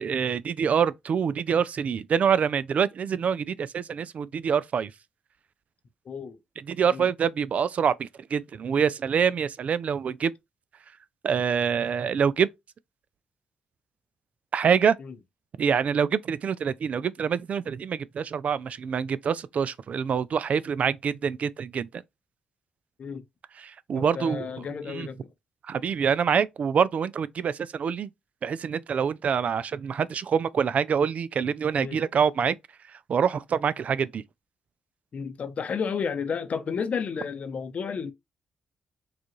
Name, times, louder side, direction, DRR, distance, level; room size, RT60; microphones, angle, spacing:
voice 1, 0.0-4.9 6.7-10.3 11.2-12.5 14.5-15.0 15.6-21.9 23.6-24.5 24.9-25.1 25.7-28.1 28.4-32.6 33.1-34.2, right 7 dB, 55° right, 0.3 m, -25 dB
voice 2, 6.0-6.4 6.9-7.1 15.0-15.1 23.0-23.2 23.9-25.3 31.8-32.0 35.1-38.1, left 6 dB, 55° left, 0.7 m, -32 dB
4.8 x 2.4 x 3.0 m
supercardioid pair, 55°, 3 cm